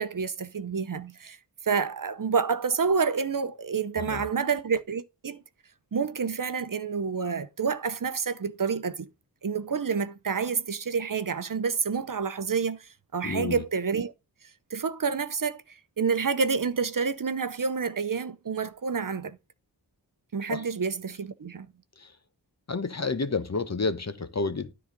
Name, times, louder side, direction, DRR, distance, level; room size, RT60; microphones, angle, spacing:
voice 1, 0.0-1.4 1.6-5.4 5.9-9.1 9.4-14.1 14.7-19.4 20.3-21.7, right 5 dB, 50° right, 0.8 m, -28 dB
voice 2, 13.2-13.6 20.5-20.6 22.0-22.1 22.7-24.7, left 4 dB, 40° left, 1.0 m, -30 dB
10.0 x 4.0 x 5.2 m
cardioid pair, 45°, 42 cm